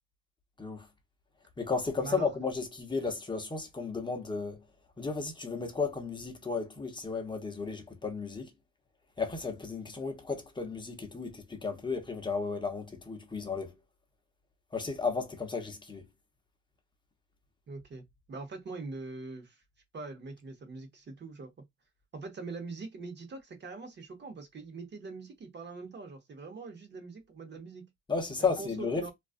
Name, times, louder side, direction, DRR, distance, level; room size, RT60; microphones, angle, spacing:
voice 1, 1.6-4.6 5.0-8.5 9.2-13.7 14.7-16.1 28.1-29.1, left 4 dB, 15° left, 0.8 m, -34 dB
voice 2, 17.7-19.6 19.9-21.5 22.1-27.9 28.4-29.1, right 3 dB, 35° right, 0.8 m, -43 dB
2.5 x 2.2 x 2.4 m
cardioid pair, 95°, 29 cm